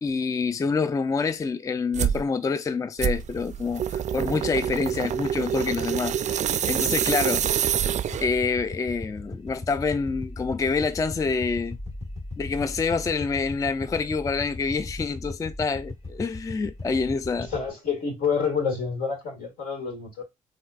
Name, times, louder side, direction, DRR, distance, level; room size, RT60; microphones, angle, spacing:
voice 1, 0.0-7.4 8.2-11.8 12.4-17.5, left 4 dB, 20° left, 0.3 m, -27 dB
sound 1, 1.9-2.2 3.0-8.4, right 9 dB, 50° right, 0.4 m, -26 dB
sound 2, 8.0-17.7, left 2 dB, 45° left, 1.6 m, -38 dB
voice 2, 17.4-20.2, left 6 dB, 75° left, 1.9 m, -28 dB
4.2 x 2.5 x 2.4 m
supercardioid pair, 55°, 15 cm